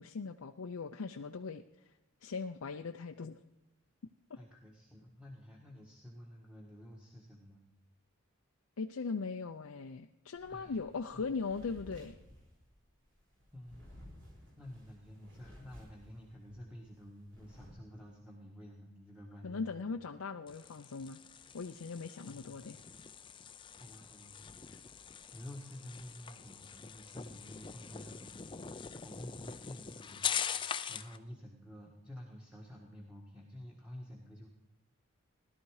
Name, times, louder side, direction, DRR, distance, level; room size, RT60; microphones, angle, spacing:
voice 1, 0.0-1.6 2.2-3.4 4.3-4.4 8.8-12.2 19.4-21.2 21.5-22.8, left 4 dB, 85° left, 5 dB, 0.6 m, -39 dB
voice 2, 4.4-7.6 10.5-10.8 11.1-11.2 13.5-14.0 14.6-20.0 22.2-22.5 23.7-34.5, equal, 5° right, -2 dB, 1.5 m, -51 dB
sound 1, 10.3-16.6 16.9-17.7, equal, 55° right, 7.2 m, -56 dB
sound 2, 20.5-31.2, left 7 dB, 20° left, 0.5 m, -43 dB
17.0 x 12.0 x 4.8 m, 0.95 s
head